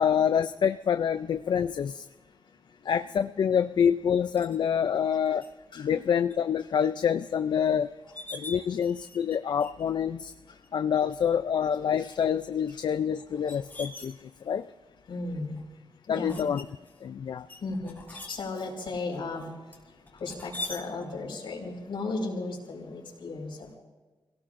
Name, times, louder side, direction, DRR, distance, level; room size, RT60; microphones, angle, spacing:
voice 1, 0.0-2.0 2.9-5.5 5.8-7.9 8.3-10.3 10.7-14.1 14.5-14.7 16.1-16.6 17.0-17.5, left 8 dB, 60° left, 9 dB, 0.4 m, -26 dB
sound 1, 4.4-4.6 5.4-5.5 5.9-6.3 6.8-6.9 7.6-7.7 8.0-9.3 9.6-9.9 10.6-10.7 11.6-11.9 12.7-14.6 15.2-15.6 16.3-17.0 17.5-18.4 19.7-20.8, left 2 dB, 20° left, 2.6 m, -42 dB
voice 2, 15.1-15.6 16.1-16.4 17.6-19.5 20.2-23.8, left 3 dB, 80° left, -2 dB, 5.0 m, -35 dB
30.0 x 17.5 x 2.6 m, 1.3 s
wide cardioid pair, 180°, 9 cm